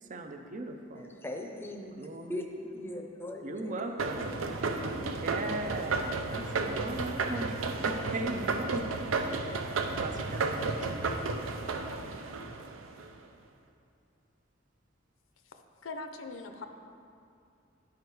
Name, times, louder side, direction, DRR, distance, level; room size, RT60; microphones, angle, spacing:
voice 1, 0.0-1.1 2.0-2.5 3.4-4.4 5.0-9.1 9.9-11.1, right 2 dB, 40° right, 6 dB, 0.6 m, -38 dB
voice 2, 1.0-2.0 2.3-3.7, left 1 dB, 10° left, 2 dB, 0.7 m, -39 dB
sound 1, 4.0-13.1, right 3 dB, 80° right, 0.6 m, -33 dB
voice 3, 15.8-16.7, left 3 dB, 80° left, 6 dB, 0.6 m, -40 dB
10.5 x 5.0 x 4.6 m, 2.5 s
head